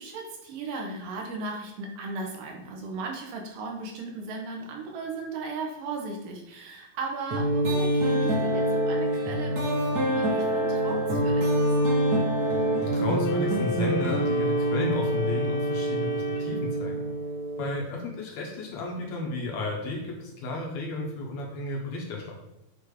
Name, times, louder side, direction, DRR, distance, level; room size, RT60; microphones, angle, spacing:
voice 1, 0.0-11.7, right 3 dB, 80° right, 1 dB, 2.7 m, -37 dB
sound 1, 7.3-17.9, right 1 dB, 55° right, 1.1 m, -26 dB
voice 2, 12.8-17.1 17.6-22.3, left 2 dB, 65° left, -1 dB, 2.1 m, -32 dB
Organ, 13.2-17.2, equal, 80° left, 1.4 m, -37 dB
8.2 x 2.9 x 4.8 m, 0.88 s
omnidirectional pair, 3.9 m